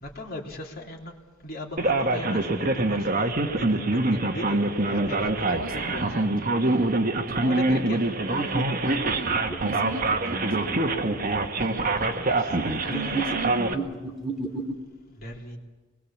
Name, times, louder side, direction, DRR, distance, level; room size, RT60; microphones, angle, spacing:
voice 1, 0.0-1.2 1.4-6.9 7.4-8.2 10.0-10.1 12.2-13.3 15.1-15.6, left 1 dB, 45° left, 0 dB, 3.4 m, -38 dB
Male speech man speaking, 1.8-13.7, right 2 dB, 40° right, 1.5 m, -25 dB
voice 2, 5.5-6.3 6.6-7.0 7.3-7.8 8.3-11.1 11.5-12.2 12.8-13.9, right 2 dB, 80° right, 4 dB, 2.7 m, -38 dB
sound 1, 8.2-11.2 12.5-14.7, right 3 dB, ahead, 2.4 m, -33 dB
26.0 x 21.0 x 7.3 m, 1.4 s
head